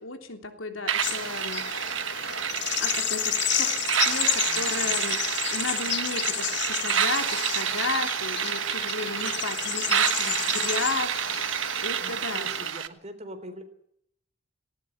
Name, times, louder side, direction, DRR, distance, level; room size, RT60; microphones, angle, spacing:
voice 1, 0.0-1.6 2.8-5.2 5.5-11.5 11.8-12.5, left 3 dB, 85° left, 6 dB, 3.3 m, -34 dB
sound 1, 0.9-12.9, right 9 dB, 80° right, 1.3 m, -29 dB
sound 2, 1.0-12.7, left 11 dB, 60° left, 1.5 m, -31 dB
voice 2, 4.5-5.1 11.6-13.6, right 1 dB, 35° right, 9 dB, 3.7 m, -44 dB
19.0 x 18.5 x 9.5 m, 0.72 s
head